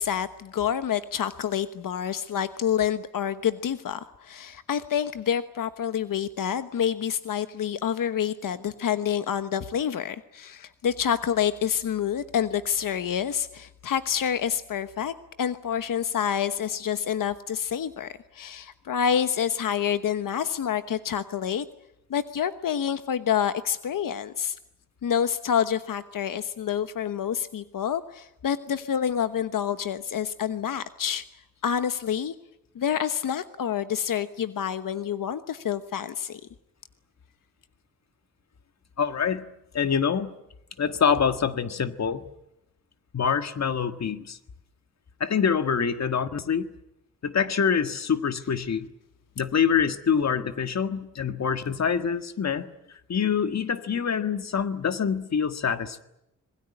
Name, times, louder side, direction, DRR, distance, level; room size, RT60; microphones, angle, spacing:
voice 1, 0.0-21.6 22.1-24.6 25.0-31.2 31.6-32.3 32.7-36.4, left 8 dB, 85° left, 11 dB, 1.2 m, -28 dB
voice 2, 39.0-39.5 39.7-40.3 40.8-42.2 43.1-44.4 45.2-46.7 47.2-48.9 49.4-52.7 53.1-56.0, left 7 dB, 55° left, 10 dB, 1.7 m, -25 dB
26.0 x 21.5 x 9.7 m, 0.85 s
wide cardioid pair, 145°, 32 cm